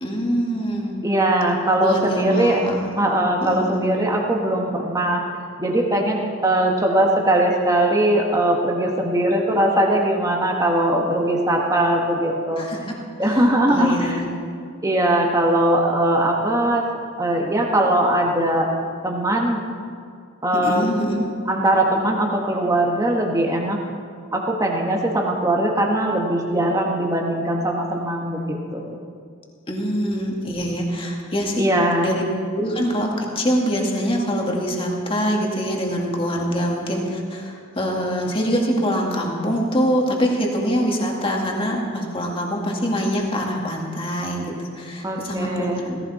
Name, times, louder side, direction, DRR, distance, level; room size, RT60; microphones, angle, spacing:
voice 1, 0.0-1.0 1.8-3.0 3.4-4.0 12.6-12.8 13.2-13.4 13.7-14.3 20.5-21.2 29.7-31.7 32.0-32.2 32.5-46.0, equal, 25° left, -1 dB, 2.1 m, -24 dB
voice 2, 1.0-2.6 3.0-5.2 5.6-12.7 13.2-14.2 14.8-16.8 17.2-18.7 19.0-19.6 20.4-20.9 21.5-23.8 24.3-29.0 31.6-32.1 45.0-45.8, right 1 dB, 15° right, 0 dB, 1.6 m, -20 dB
17.0 x 15.5 x 4.3 m, 2.2 s
head